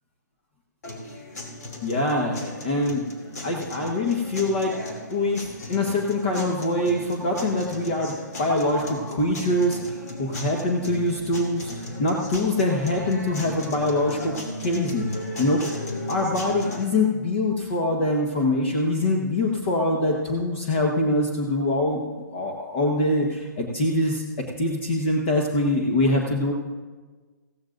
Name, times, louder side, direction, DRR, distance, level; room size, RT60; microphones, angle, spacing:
sound 1, 0.8-16.8, left 1 dB, 60° left, 2.8 m, -36 dB
voice 1, 1.8-3.0 3.4-4.7 5.1-8.1 8.4-11.7 12.0-14.3 14.6-15.1 15.4-15.7 16.1-22.0 22.3-24.2 24.6-26.5, left 1 dB, 40° left, 0 dB, 1.3 m, -24 dB
16.0 x 15.0 x 2.6 m, 1.4 s
hypercardioid pair, 165°, 10 cm